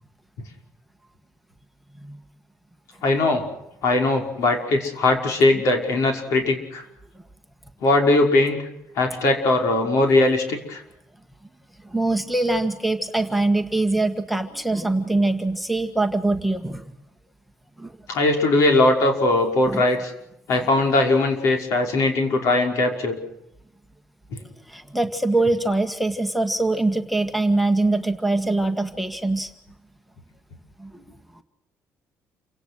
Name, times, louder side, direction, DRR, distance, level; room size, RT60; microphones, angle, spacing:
voice 1, 3.0-3.4 3.8-6.8 7.8-8.6 9.0-10.8 18.1-20.1 20.5-23.2 24.3-24.4, left 2 dB, 70° left, 4 dB, 5.7 m, -20 dB
voice 2, 11.8-16.8 17.8-17.9 19.7-19.8 24.7-29.5 30.8-31.0 31.4-31.5, right 2 dB, ahead, 9 dB, 1.5 m, -23 dB
29.0 x 17.5 x 6.3 m, 0.82 s
cardioid pair, 145°, 6 cm